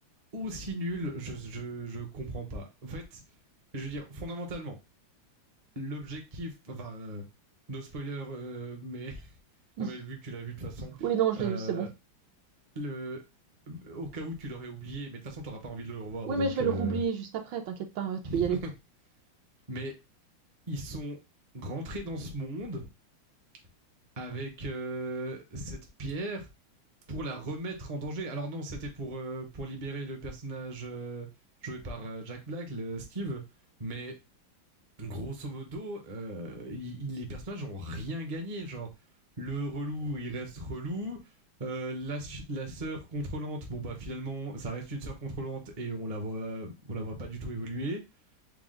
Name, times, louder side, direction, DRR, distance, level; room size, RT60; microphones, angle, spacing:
voice 1, 0.3-3.2 3.7-4.8 5.8-7.3 7.7-9.3 9.8-11.1 11.4-11.9 12.7-13.2 13.7-17.0 18.2-18.7 19.7-20.0 20.7-21.2 21.5-22.9 24.2-26.5 27.1-31.3 31.6-33.4 33.8-34.2 35.0-38.9 39.4-41.2 41.6-48.0, right 1 dB, 55° right, 0.4 m, -37 dB
voice 2, 11.0-11.9 16.3-18.6, right 7 dB, 75° right, 1.3 m, -29 dB
4.7 x 2.0 x 3.7 m
omnidirectional pair, 2.2 m